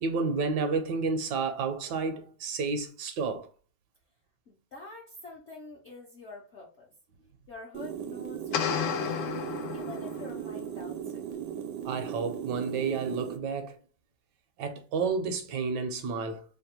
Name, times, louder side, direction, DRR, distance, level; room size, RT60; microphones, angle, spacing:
voice 1, 0.0-3.5 11.8-13.8 14.6-16.4, right 4 dB, 70° right, 1.2 m, -31 dB
voice 2, 4.5-6.9 7.5-9.3 9.7-11.2, left 3 dB, 65° left, 0.6 m, -46 dB
Rocket boost, 7.7-13.4, right 9 dB, 90° right, 1.4 m, -37 dB
sound 1, 8.5-10.5, left 8 dB, 85° left, 1.4 m, -32 dB
3.4 x 2.2 x 4.2 m
omnidirectional pair, 2.1 m